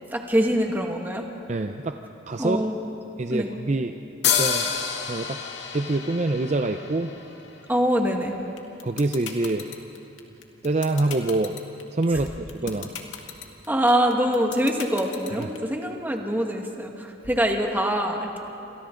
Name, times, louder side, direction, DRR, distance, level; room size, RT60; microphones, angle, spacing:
voice 1, 0.1-1.3 2.4-2.8 3.3-3.5 7.7-8.3 13.7-18.4, equal, 10° right, 2 dB, 1.7 m, -24 dB
voice 2, 1.5-2.0 2.3-2.7 3.2-4.0 4.2-5.4 5.7-7.1 8.8-9.7 10.6-11.6 11.9-12.9 15.4-15.5, right 2 dB, 35° right, 6 dB, 0.6 m, -26 dB
sound 1, 4.2-7.8, left 7 dB, 60° left, 2.1 m, -28 dB
sound 2, 8.6-15.6, left 7 dB, 80° left, 2.1 m, -36 dB
29.0 x 27.0 x 3.9 m, 2.9 s
head